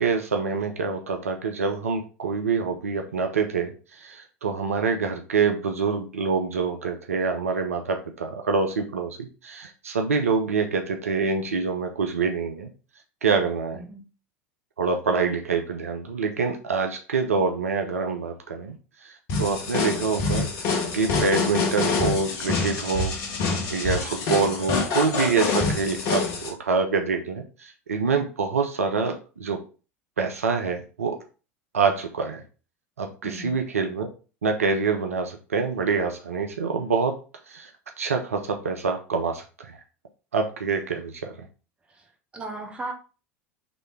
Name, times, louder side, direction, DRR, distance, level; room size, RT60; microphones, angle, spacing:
voice 1, 0.0-12.7 13.2-13.8 14.8-18.8 19.0-20.5 20.9-23.2 23.7-29.6 30.2-31.2 31.7-32.4 33.0-34.1 34.4-37.2 37.5-37.7 38.0-39.8 40.3-41.4, right 5 dB, 80° right, 5 dB, 0.5 m, -26 dB
sound 1, 19.3-26.5, left 4 dB, 45° left, 1.0 m, -26 dB
voice 2, 33.2-33.6 42.3-42.9, right 2 dB, 15° right, 3 dB, 1.0 m, -36 dB
4.1 x 3.2 x 3.1 m, 0.35 s
figure-of-eight pair, 75°, 8 cm